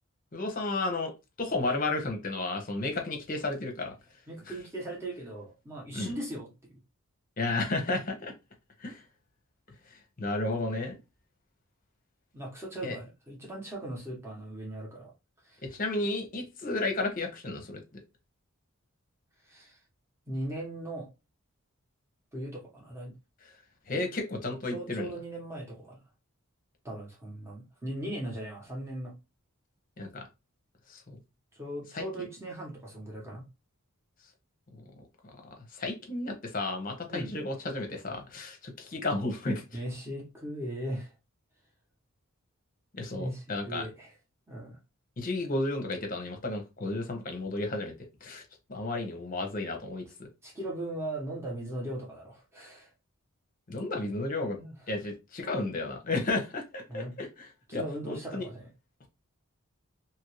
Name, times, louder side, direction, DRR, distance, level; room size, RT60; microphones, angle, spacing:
voice 1, 0.3-1.1 1.4-3.9 5.9-6.1 7.4-8.3 8.8-9.0 10.2-11.0 12.8-13.0 15.6-17.8 23.9-25.1 30.0-30.2 30.9-31.2 31.9-32.0 34.7-34.8 35.7-39.6 43.0-43.9 45.2-47.9 48.2-48.4 48.7-50.0 53.7-54.6 54.9-58.5, left 2 dB, 40° left, 0.7 m, -32 dB
voice 2, 4.3-6.8 12.3-15.1 15.4-15.6 19.5-19.8 20.3-21.1 22.3-23.1 23.9-24.1 24.7-26.0 26.8-29.1 31.5-33.4 37.1-37.3 39.7-41.1 43.1-44.1 44.5-44.8 50.4-52.9 54.6-54.7 56.9-57.1 57.7-58.7, right 1 dB, 10° right, 1.0 m, -38 dB
2.9 x 2.6 x 3.0 m
head